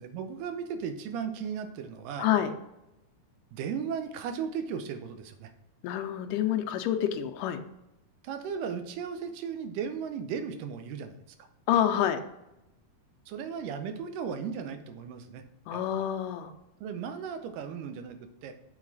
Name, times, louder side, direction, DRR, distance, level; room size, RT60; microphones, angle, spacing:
voice 1, 0.0-2.3 3.5-5.5 8.2-11.2 13.3-15.4 15.7-15.8 16.8-18.5, right 7 dB, 90° right, 8 dB, 2.4 m, -36 dB
voice 2, 2.2-2.5 5.8-7.6 11.7-12.2 15.7-16.5, left 10 dB, 90° left, 6 dB, 2.2 m, -27 dB
7.4 x 3.9 x 4.0 m, 0.91 s
omnidirectional pair, 3.7 m